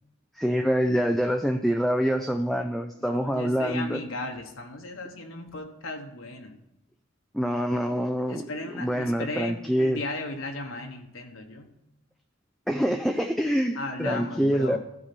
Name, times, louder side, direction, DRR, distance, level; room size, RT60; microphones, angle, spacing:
voice 1, 0.3-4.0 7.3-8.4 8.8-10.0 12.7-14.8, equal, ahead, 5 dB, 0.4 m, -25 dB
voice 2, 3.0-6.6 8.3-11.7 13.7-14.8, left 2 dB, 75° left, 3 dB, 1.3 m, -36 dB
13.5 x 4.9 x 5.9 m, 0.88 s
head